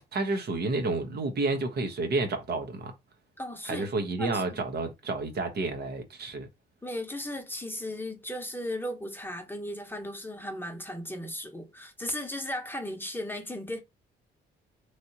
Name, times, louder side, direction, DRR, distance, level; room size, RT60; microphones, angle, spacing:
voice 1, 0.1-2.9 3.6-6.5, right 3 dB, 55° right, 1.0 m, -30 dB
voice 2, 3.4-3.9 4.2-4.6 6.8-13.8, left 1 dB, 10° left, 0.9 m, -36 dB
3.2 x 2.7 x 2.8 m
cardioid pair, 90°, 20 cm